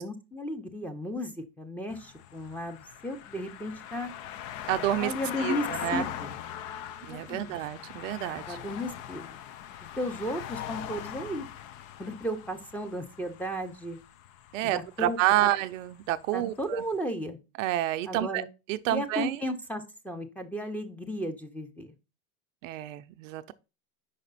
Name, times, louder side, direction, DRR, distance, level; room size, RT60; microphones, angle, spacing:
voice 1, 0.0-4.1 5.0-5.7 5.9-6.3 7.0-7.5 8.5-9.4 10.0-11.5 12.0-14.0 14.6-15.5 16.3-17.4 18.1-18.5 18.9-21.9, equal, 5° left, 0.8 m, -35 dB
sound 1, 1.9-16.4 16.8-16.9, left 11 dB, 45° left, 0.6 m, -41 dB
voice 2, 4.7-5.1 5.4-6.0 7.1-8.6 14.5-16.8 17.6-18.4 18.7-19.4 22.6-23.5, right 14 dB, 65° right, 0.6 m, -29 dB
5.4 x 5.0 x 4.1 m
hypercardioid pair, 110°, 42 cm